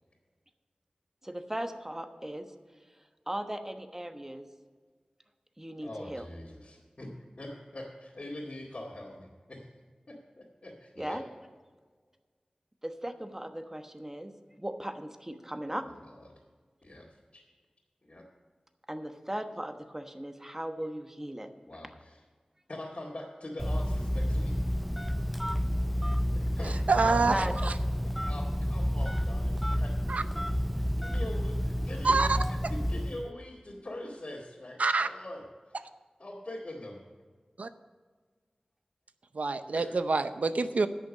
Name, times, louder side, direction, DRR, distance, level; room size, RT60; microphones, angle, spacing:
voice 1, 1.2-2.5 3.3-4.5 5.6-6.2 11.0-11.2 12.8-15.8 18.9-21.5 27.2-27.5, right 1 dB, 15° right, 7 dB, 1.1 m, -37 dB
voice 2, 5.8-7.1 7.4-9.7 10.1-11.2 16.1-16.3 16.8-17.1 17.3-17.4 18.0-18.2 21.7-22.2 22.7-24.5 26.3-26.8 27.0-27.2 27.7-30.5 30.7-32.3 32.7-35.4 36.2-37.0 39.7-40.0, left 1 dB, 55° left, -6 dB, 2.2 m, -43 dB
Telephone, 23.6-33.3, equal, ahead, 0.5 m, -30 dB
voice 3, 26.6-27.7 30.1-30.2 32.0-32.4 34.8-35.1 37.6-37.7 39.3-40.9, right 3 dB, 75° right, 11 dB, 0.6 m, -27 dB
10.5 x 6.8 x 7.3 m, 1.5 s
wide cardioid pair, 45°, 2 cm